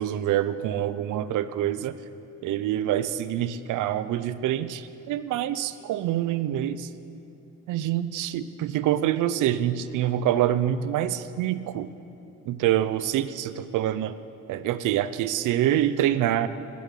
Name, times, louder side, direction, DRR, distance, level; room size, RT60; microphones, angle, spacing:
voice 1, 0.0-1.9 2.4-6.9 7.7-11.9 12.5-14.2 14.5-16.5, right 11 dB, 85° right, 14 dB, 0.7 m, -26 dB
12.0 x 11.5 x 8.4 m, 2.8 s
cardioid pair, 90°, 30 cm